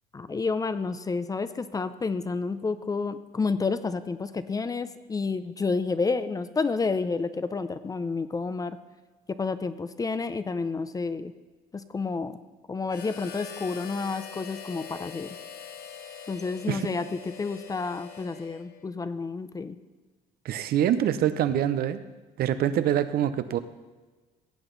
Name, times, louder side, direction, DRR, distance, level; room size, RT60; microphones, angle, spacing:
voice 1, 0.1-8.8 9.3-11.3 11.7-12.4 12.7-15.3 16.3-17.0 17.4-19.8, left 4 dB, 20° left, 12 dB, 0.5 m, -30 dB
Harmonica, 12.9-18.9, left 7 dB, 65° left, 1.3 m, -43 dB
voice 2, 20.4-22.0 22.4-23.6, right 10 dB, 65° right, 12 dB, 0.7 m, -25 dB
16.5 x 8.0 x 3.9 m, 1.3 s
cardioid pair, 110°, 17 cm